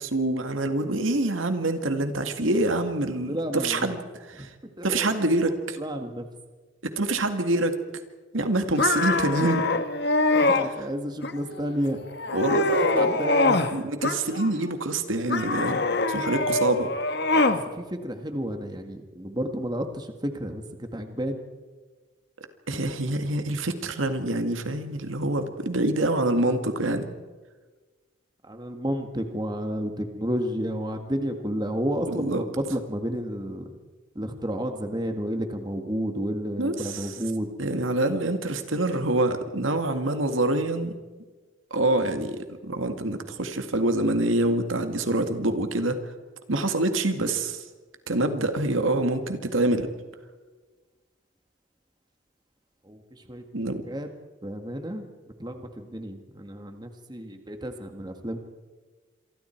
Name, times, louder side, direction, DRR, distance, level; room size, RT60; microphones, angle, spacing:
voice 1, 0.0-4.0 4.3-4.5 4.8-5.8 7.0-7.8 8.3-9.6 12.3-13.2 13.7-15.8 16.1-16.9 22.7-27.1 32.1-32.4 36.6-37.1 37.6-41.0 41.7-46.0 46.5-47.6 48.1-49.9 53.5-53.8, right 2 dB, 85° right, 7 dB, 2.0 m, -26 dB
voice 2, 3.3-3.9 4.4-4.5 4.8-5.4 5.8-6.3 10.3-12.0 12.5-13.6 17.7-21.4 28.5-33.7 34.2-37.5 52.9-53.5 53.9-54.1 54.4-55.1 55.4-58.4, equal, 20° right, 6 dB, 1.8 m, -31 dB
sound 1, 8.8-10.7 11.2-11.7 12.1-13.7 14.0-14.7 15.3-17.6, left 2 dB, 55° left, 1.4 m, -24 dB
27.0 x 24.5 x 4.6 m, 1.3 s
head